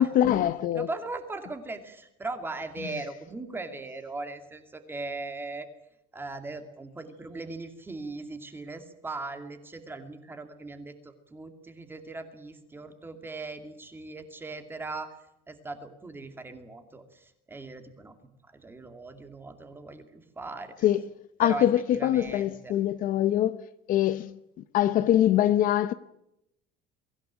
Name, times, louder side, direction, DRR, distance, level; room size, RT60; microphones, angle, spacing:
voice 1, 0.0-0.9 20.8-21.1 21.4-23.6 23.9-24.3 24.7-25.9, left 12 dB, 50° left, 0.8 m, -23 dB
voice 2, 0.7-5.7 6.1-15.1 15.5-18.1 18.5-20.8 21.4-21.7 21.9-22.7, right 3 dB, 10° right, 2.4 m, -39 dB
23.5 x 16.0 x 10.0 m
cardioid pair, 170°, 19 cm